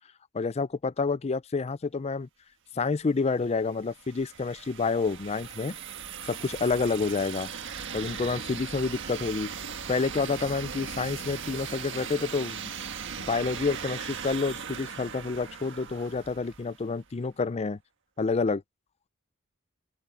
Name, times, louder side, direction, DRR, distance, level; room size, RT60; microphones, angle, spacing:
voice 1, 0.3-2.3 2.8-5.8 6.3-7.5 7.9-9.5 9.9-12.7 13.2-17.8 18.2-18.6, left 4 dB, 30° left, 0.4 m, -28 dB
sound 1, 3.2-17.0, right 7 dB, 60° right, 1.6 m, -39 dB
open air
head